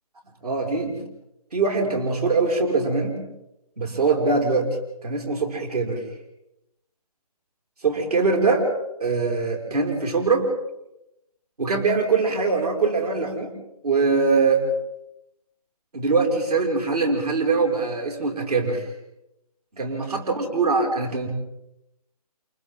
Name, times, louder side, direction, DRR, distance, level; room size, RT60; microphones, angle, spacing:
voice 1, 0.4-1.0 1.5-3.1 3.8-4.7 5.0-6.0 7.8-8.7 9.0-10.5 11.6-13.5 13.8-14.7 15.9-18.9 19.8-21.3, right 4 dB, 70° right, 1 dB, 6.0 m, -22 dB
30.0 x 28.5 x 3.8 m, 0.88 s
hypercardioid pair, 165°, 20 cm